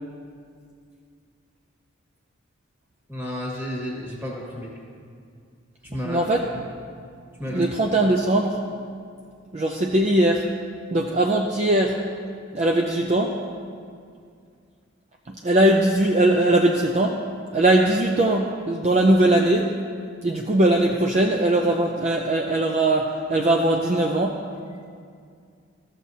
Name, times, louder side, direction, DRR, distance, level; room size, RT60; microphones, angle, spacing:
voice 1, 3.1-4.7 5.8-6.2 7.4-7.7, equal, 10° right, -4 dB, 1.5 m, -31 dB
voice 2, 6.0-6.5 7.4-8.6 9.5-10.4 10.9-11.9 12.5-13.4 15.3-17.2 17.5-19.7 20.2-24.4, right 1 dB, 35° right, 1 dB, 0.4 m, -20 dB
14.0 x 7.3 x 2.7 m, 2.2 s
head